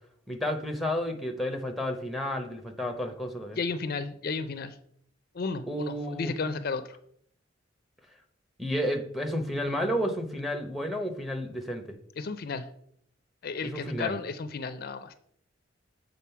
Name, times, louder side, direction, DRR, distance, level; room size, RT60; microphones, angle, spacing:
voice 1, 0.3-3.6 5.7-6.3 8.6-11.8 13.6-14.2, equal, ahead, 5 dB, 0.7 m, -31 dB
voice 2, 3.5-4.8 5.3-7.0 12.2-12.7 13.4-15.1, left 4 dB, 50° left, 11 dB, 0.4 m, -33 dB
7.3 x 3.8 x 5.7 m, 0.69 s
head